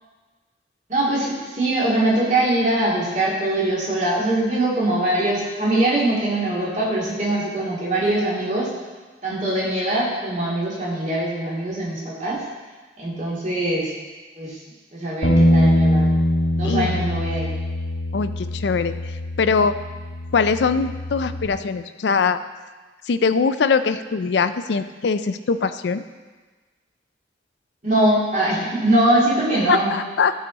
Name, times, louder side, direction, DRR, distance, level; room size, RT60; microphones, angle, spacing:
voice 1, 0.9-8.7 9.2-12.4 13.0-13.9 14.4-14.6 14.9-16.2 16.5-17.5 27.8-29.9, right 1 dB, 45° right, -6 dB, 2.5 m, -22 dB
Bass guitar, 15.2-21.5, equal, 85° left, 1.4 m, -22 dB
voice 2, 16.6-17.0 18.1-19.8 20.3-22.4 23.1-26.0 29.7-30.3, left 5 dB, 70° left, 11 dB, 0.4 m, -22 dB
14.0 x 5.0 x 4.0 m, 1.3 s
head